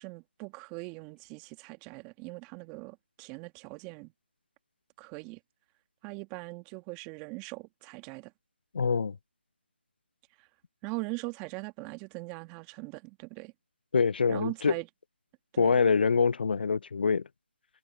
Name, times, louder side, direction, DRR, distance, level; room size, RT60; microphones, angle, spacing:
voice 1, 0.0-4.1 5.0-5.4 6.0-8.3 10.4-10.5 10.8-13.5 14.3-14.9 15.5-15.8, right 27 dB, 15° right, 2.0 m, -41 dB
voice 2, 8.7-9.2 13.9-14.7 15.6-17.3, left 5 dB, 55° left, 0.4 m, -25 dB
figure-of-eight pair, 160°, 6 cm